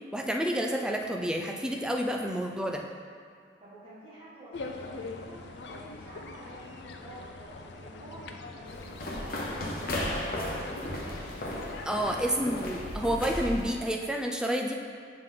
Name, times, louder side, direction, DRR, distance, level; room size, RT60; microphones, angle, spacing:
voice 1, 0.1-2.8 11.9-14.7, equal, 5° right, 1 dB, 0.4 m, -29 dB
voice 2, 3.6-10.0 10.2-11.3 11.8-12.4 12.9-13.1, right 1 dB, 30° right, -11 dB, 1.4 m, -49 dB
sound 1, 4.5-12.8, left 3 dB, 70° left, 0.4 m, -43 dB
sound 2, 8.7-13.7, left 1 dB, 55° left, 0.8 m, -35 dB
7.2 x 3.8 x 3.7 m, 2.1 s
head